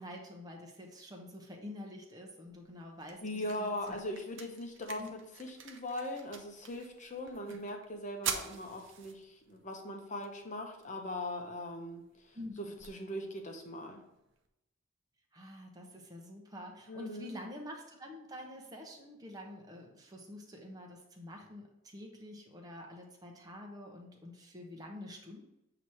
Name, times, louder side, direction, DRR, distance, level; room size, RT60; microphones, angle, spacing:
voice 1, 0.0-4.0 5.0-5.1 7.5-7.6 12.3-12.8 15.3-25.4, left 1 dB, 20° right, 0 dB, 0.9 m, -47 dB
sound 1, 2.5-14.5, right 6 dB, 65° right, 0.7 m, -47 dB
voice 2, 3.2-5.0 5.4-14.0 16.9-17.3, left 1 dB, 35° left, 3 dB, 0.9 m, -40 dB
8.0 x 2.9 x 4.7 m, 0.89 s
head